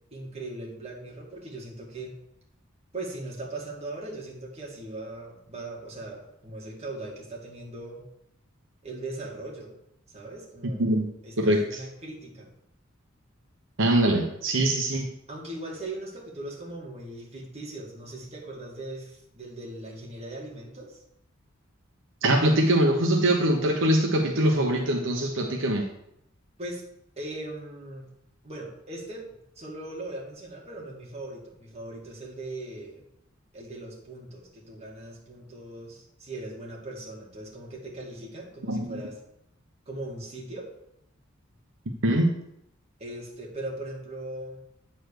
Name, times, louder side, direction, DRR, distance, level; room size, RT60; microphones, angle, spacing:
voice 1, 0.1-2.2 2.9-8.0 8.8-9.8 10.1-10.8 11.2-12.5 15.3-21.0 26.6-26.8 27.2-28.1 28.4-33.0 33.5-39.2 39.9-40.7 43.0-44.6, right 2 dB, 30° right, -2 dB, 2.1 m, -39 dB
voice 2, 10.8-11.1 11.4-11.8 13.8-15.1 22.2-25.8 38.7-38.9 42.0-42.4, right 1 dB, 65° right, 1 dB, 1.0 m, -23 dB
9.3 x 4.2 x 6.6 m, 0.78 s
head